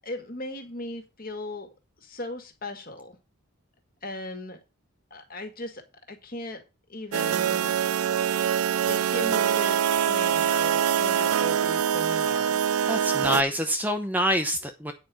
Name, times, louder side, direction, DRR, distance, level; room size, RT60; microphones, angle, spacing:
voice 1, 0.0-1.7 2.0-3.2 4.0-4.6 5.1-5.8 6.1-6.6 6.9-7.8 8.9-12.6, left 2 dB, 40° left, 6 dB, 2.1 m, -37 dB
sound 1, 7.1-13.4, right 8 dB, 75° right, 0.4 m, -24 dB
voice 2, 12.9-14.9, equal, 10° right, 6 dB, 0.7 m, -26 dB
9.3 x 5.3 x 6.3 m, 0.27 s
head